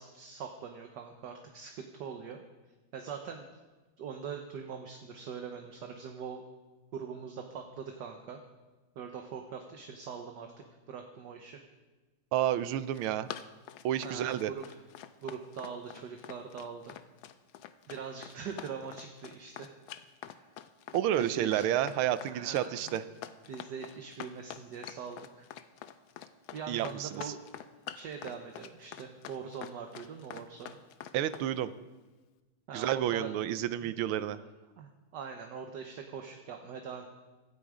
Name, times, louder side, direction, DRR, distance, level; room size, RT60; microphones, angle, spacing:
voice 1, 0.0-2.4 2.9-3.5 4.0-6.4 6.9-8.4 9.0-11.6 14.0-14.8 15.2-17.0 17.9-19.7 20.3-20.4 21.2-21.6 22.2-23.0 23.5-25.5 26.5-27.4 27.9-30.8 32.7-33.3 33.8-33.9 34.2-34.5 34.8-37.0, right 6 dB, 60° right, 4 dB, 1.5 m, -42 dB
voice 2, 12.3-13.3 13.8-14.5 20.9-23.0 26.7-27.3 31.1-31.7 32.7-34.4, right 11 dB, 90° right, 14 dB, 1.5 m, -30 dB
Run, 12.7-31.5, left 10 dB, 80° left, 1.5 m, -46 dB
16.5 x 12.5 x 5.0 m, 1.2 s
omnidirectional pair, 2.2 m